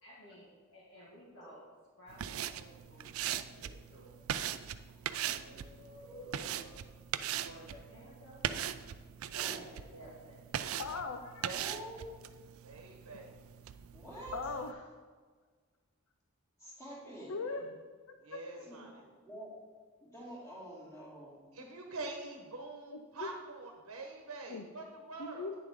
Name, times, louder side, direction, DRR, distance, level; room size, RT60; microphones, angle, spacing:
voice 1, 0.0-1.6 2.0-4.3 5.2-6.8 7.2-8.4 9.5-10.6 18.5-19.0, equal, 60° left, -6 dB, 1.7 m, -55 dB
sound 1, 2.1-14.7, right 10 dB, 75° right, 0.4 m, -40 dB
voice 2, 4.9-5.5 9.1-9.5 11.4-11.6 12.6-13.4 18.2-19.0 21.5-25.6, right 3 dB, 90° right, 2 dB, 1.1 m, -46 dB
voice 3, 6.0-6.3 9.3-9.6 11.4-12.0 13.9-14.3 16.6-17.3 18.7-18.9 19.2-19.5 20.0-21.4, right 1 dB, 15° left, -7 dB, 2.7 m, -48 dB
voice 4, 10.8-11.5 14.3-14.7 17.3-17.7 18.3-18.4 23.2-23.3 24.5-24.6 25.2-25.6, left 4 dB, 80° left, 5 dB, 0.6 m, -39 dB
9.4 x 6.9 x 3.7 m, 1.5 s
head